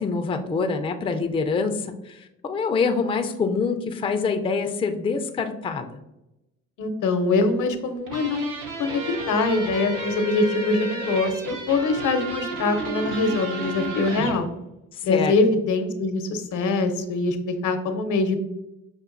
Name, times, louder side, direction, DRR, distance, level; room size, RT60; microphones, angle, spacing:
voice 1, 0.0-6.0 14.9-15.3, left 4 dB, 15° left, 5 dB, 0.4 m, -25 dB
voice 2, 6.8-8.5 8.8-14.5 15.0-18.3, left 3 dB, 65° left, 8 dB, 0.7 m, -23 dB
sound 1, 8.1-14.4, right 2 dB, 70° right, 0.8 m, -35 dB
sound 2, 8.6-14.2, equal, 55° right, 1.1 m, -35 dB
6.1 x 2.5 x 2.5 m, 0.91 s
cardioid pair, 90°, 33 cm